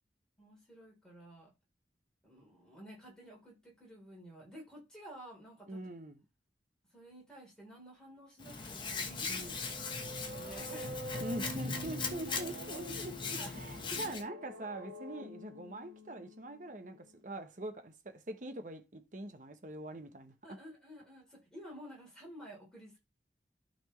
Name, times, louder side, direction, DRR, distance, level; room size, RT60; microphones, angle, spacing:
voice 1, 0.4-1.5 2.2-5.8 6.9-9.5 9.9-10.9 13.4-13.6 13.9-14.2 20.4-23.0, equal, 5° left, 3.6 m, -52 dB
voice 2, 5.7-6.2 9.3-9.6 11.2-20.6, right 1 dB, 45° right, 1.1 m, -43 dB
Hands, 8.4-14.2, left 4 dB, 25° left, 1.2 m, -39 dB
sound 1, 9.4-17.2, equal, 80° right, 2.0 m, -47 dB
12.5 x 4.3 x 3.2 m
head